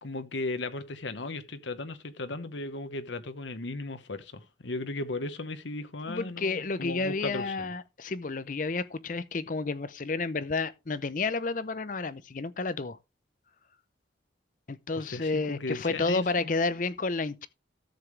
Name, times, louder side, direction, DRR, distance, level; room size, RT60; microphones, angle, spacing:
voice 1, 0.0-7.7 14.9-16.5, left 2 dB, 90° left, 1.1 m, -36 dB
voice 2, 6.1-13.0 14.7-17.5, left 3 dB, 45° left, 0.7 m, -31 dB
13.5 x 7.0 x 3.2 m
head